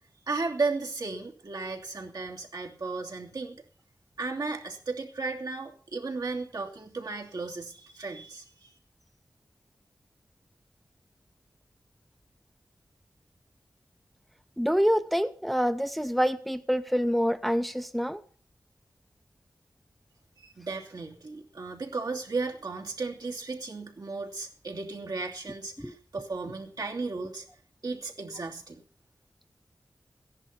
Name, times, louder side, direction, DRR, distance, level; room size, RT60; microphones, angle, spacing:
voice 1, 0.3-3.6 4.2-8.7 20.4-27.5 27.8-28.8, right 3 dB, 70° right, 2.8 m, -35 dB
voice 2, 14.6-18.2 25.8-25.9, equal, ahead, 0.7 m, -26 dB
15.0 x 10.5 x 5.8 m
wide cardioid pair, 65°, 7 cm